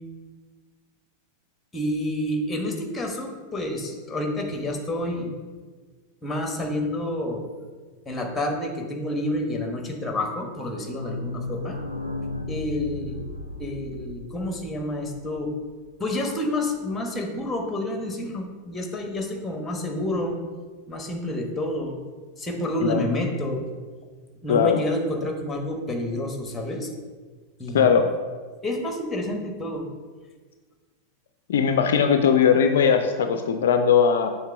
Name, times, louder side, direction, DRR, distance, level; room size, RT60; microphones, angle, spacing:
voice 1, 1.7-5.3 6.2-7.4 8.1-11.8 12.5-13.2 13.6-15.5 16.0-20.4 20.9-22.0 22.4-23.6 24.4-26.9 27.6-28.0 28.6-29.9, left 1 dB, 10° left, 2 dB, 1.1 m, -29 dB
sound 1, 10.4-15.9 16.2-16.3 16.5-16.6 16.9-17.0, left 2 dB, 85° right, 0.5 m, -35 dB
voice 2, 24.5-24.8 27.7-28.1 31.5-34.3, left 7 dB, 60° left, 7 dB, 0.4 m, -19 dB
7.2 x 3.1 x 4.9 m, 1.4 s
figure-of-eight pair, 90°, 0 cm